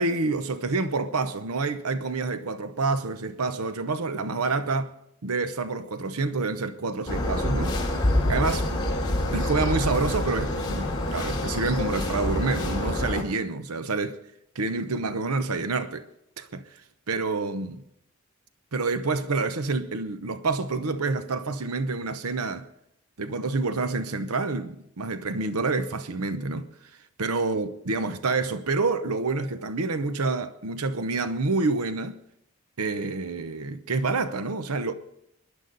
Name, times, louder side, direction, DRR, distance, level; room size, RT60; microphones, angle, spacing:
voice 1, 0.0-4.9 5.2-7.7 8.3-8.7 9.3-14.2 14.5-16.0 16.4-16.7 17.1-17.8 18.7-22.7 23.2-26.7 27.2-32.2 32.8-34.9, right 3 dB, 90° right, 0.9 m, -28 dB
sound 1, 7.1-13.2, left 1 dB, 20° left, 2.9 m, -26 dB
25.0 x 11.0 x 4.0 m
head